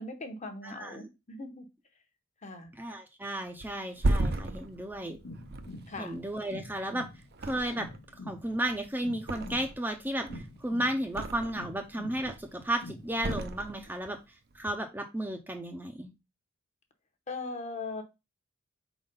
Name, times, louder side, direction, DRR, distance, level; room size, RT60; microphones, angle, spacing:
voice 1, 0.0-1.7 2.4-2.7 5.9-6.2 17.3-18.0, left 3 dB, 35° left, 1.0 m, -39 dB
voice 2, 0.6-1.1 2.7-5.2 6.0-7.1 7.4-7.9 8.2-14.2 14.5-16.1, right 1 dB, 10° right, 0.6 m, -34 dB
Thump thud, 3.6-6.9 7.3-8.1 8.4-9.9 10.2-11.7 12.1-12.6 13.2-14.2 14.5-14.7, right 2 dB, 50° right, 0.6 m, -34 dB
sound 1, 4.6-13.6, left 1 dB, 70° left, 0.9 m, -47 dB
4.6 x 4.0 x 5.3 m
head